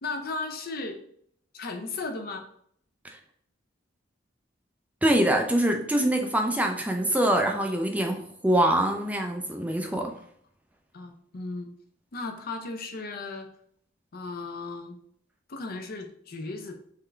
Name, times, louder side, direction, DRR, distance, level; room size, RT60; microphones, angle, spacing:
voice 1, 0.0-1.0 1.5-2.4 9.9-10.3 10.9-11.7 12.1-13.5 14.1-15.0 15.5-16.7, left 3 dB, 50° left, 5 dB, 0.5 m, -36 dB
voice 2, 5.0-10.1, right 1 dB, 10° right, 3 dB, 0.4 m, -24 dB
3.7 x 3.4 x 3.2 m, 0.66 s
head